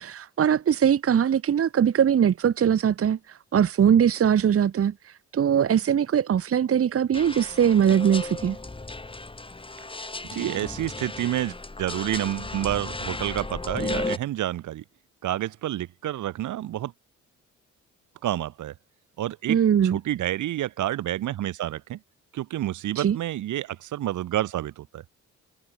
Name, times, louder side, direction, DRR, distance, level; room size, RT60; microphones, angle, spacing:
voice 1, 0.0-8.6 19.5-20.0 22.9-23.2, right 8 dB, 50° right, 1.5 m, -21 dB
sound 1, 7.1-14.2, left 2 dB, 15° left, 5.7 m, -34 dB
voice 2, 10.3-14.8 15.2-16.9 18.2-18.7 19.2-19.6 19.8-22.0 22.3-25.0, right 13 dB, 75° right, 2.7 m, -29 dB
cardioid pair, 90°, 30 cm